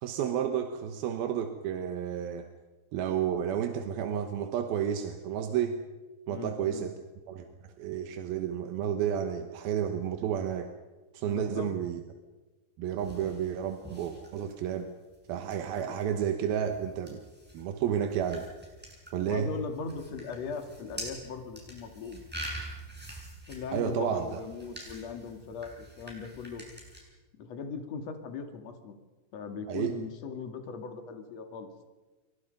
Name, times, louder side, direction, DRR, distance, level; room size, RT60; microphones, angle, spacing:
voice 1, 0.0-2.5 2.9-5.8 6.3-7.0 7.3-10.7 11.1-12.0 12.8-14.9 15.3-17.2 17.5-18.5 19.1-19.5 23.7-24.4 29.7-30.0, right 9 dB, 70° right, 6 dB, 2.5 m, -31 dB
voice 2, 6.3-6.9 11.2-11.7 15.9-16.0 19.3-22.2 23.5-26.6 27.4-29.0 29.3-31.7, left 5 dB, 45° left, 5 dB, 2.7 m, -39 dB
sound 1, 13.0-27.0, right 1 dB, ahead, 7.0 m, -46 dB
29.0 x 24.0 x 5.4 m, 1.2 s
omnidirectional pair, 5.5 m